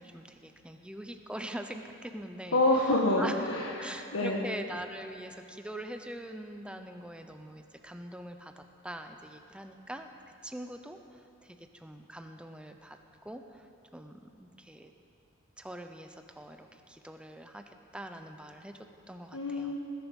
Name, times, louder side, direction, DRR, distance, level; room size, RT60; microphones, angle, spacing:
voice 1, 0.0-2.6 3.2-3.4 3.8-13.0 13.2-13.7 13.9-14.9 15.6-19.8, right 1 dB, 5° right, 6 dB, 0.7 m, -43 dB
voice 2, 2.5-4.4 19.3-19.8, left 2 dB, 85° left, -2 dB, 1.3 m, -27 dB
20.0 x 10.5 x 5.4 m, 2.9 s
head